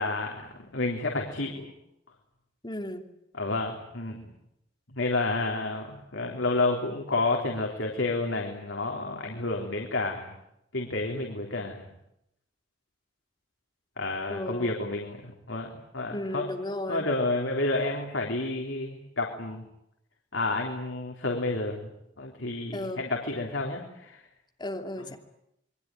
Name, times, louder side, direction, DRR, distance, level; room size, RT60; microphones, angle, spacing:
voice 1, 0.0-1.7 3.4-4.2 5.0-10.3 10.7-11.9 14.0-16.5 16.9-19.7 20.3-21.9 22.2-24.2, left 2 dB, 80° left, 1 dB, 3.7 m, -30 dB
voice 2, 2.6-3.0 14.3-14.8 16.1-17.1 22.7-23.0 24.6-25.2, left 1 dB, 25° left, 4 dB, 2.9 m, -34 dB
28.0 x 22.5 x 9.2 m, 0.81 s
head